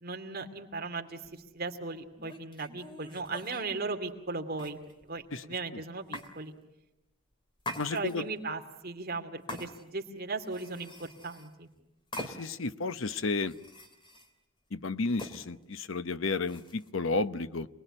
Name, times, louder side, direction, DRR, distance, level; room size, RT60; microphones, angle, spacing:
voice 1, 0.0-4.8 5.1-6.5 7.9-11.7, right 3 dB, 45° right, 4 dB, 2.6 m, -37 dB
sound 1, 1.2-1.4 2.2-3.7 4.5-5.2 6.1-6.3 7.6-8.4 9.5-10.1 10.4-11.5 12.1-12.7 13.0-14.3 15.2-15.4 16.5-16.9, left 1 dB, 25° left, 2.6 m, -43 dB
voice 2, 7.8-8.2 12.2-13.5 14.7-17.7, left 3 dB, 70° left, 12 dB, 0.9 m, -32 dB
28.0 x 21.0 x 10.0 m, 0.95 s
head